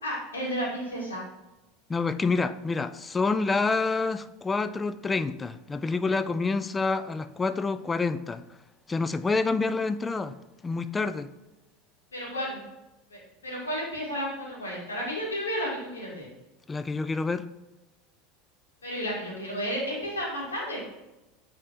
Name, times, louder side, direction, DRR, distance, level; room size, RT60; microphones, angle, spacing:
voice 1, 0.0-1.2 12.1-12.6 13.1-16.3 18.8-20.8, equal, 80° left, 2.3 m, -32 dB
voice 2, 1.9-8.4 8.9-10.4 10.6-11.3 16.7-17.4, left 4 dB, 15° left, 0.4 m, -27 dB
9.6 x 4.3 x 2.6 m
figure-of-eight pair, 75°, 0 cm